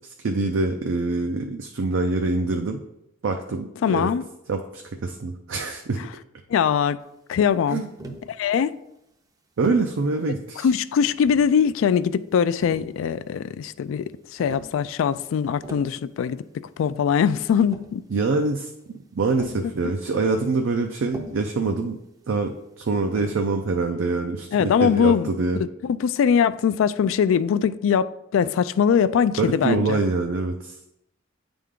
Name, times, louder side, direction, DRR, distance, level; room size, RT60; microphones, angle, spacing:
voice 1, 0.2-2.8 3.2-4.1 4.5-6.0 7.7-8.1 9.6-10.7 18.1-18.7 19.1-22.0 22.3-25.6 29.4-30.8, right 3 dB, 70° right, 0.5 m, -25 dB
voice 2, 3.8-4.2 6.5-7.0 7.3-7.8 8.4-8.7 10.6-16.4 16.8-18.0 19.8-19.9 24.5-25.3 25.8-28.1 28.3-30.0, left 7 dB, 80° left, 0.3 m, -21 dB
Tap, 8.0-8.3 9.6-9.9 11.0-11.6 12.6-13.4 14.4-14.7 15.4-16.0 17.1-17.2 17.5-18.0 19.3-19.7 21.1-21.5 23.1-23.5, right 1 dB, 20° right, 0.5 m, -40 dB
8.4 x 3.4 x 3.7 m
head